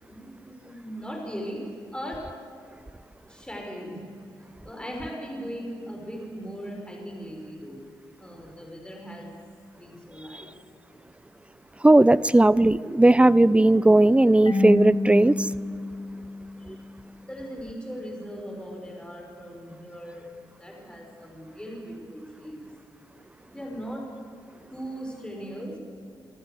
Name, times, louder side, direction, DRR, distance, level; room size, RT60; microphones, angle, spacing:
voice 1, 0.0-2.2 3.3-4.1 4.6-7.8 8.2-9.3 9.7-10.5 16.6-16.8 17.2-20.3 20.6-22.7 23.5-24.1 24.7-25.8, equal, 10° left, 0 dB, 6.1 m, -38 dB
voice 2, 11.8-15.3, right 1 dB, 10° right, 19 dB, 0.6 m, -17 dB
Marimba xylophone / Wood, 14.5-17.2, left 2 dB, 50° left, 2.4 m, -29 dB
25.5 x 13.0 x 7.9 m, 2.3 s
hypercardioid pair, 40°, 10 cm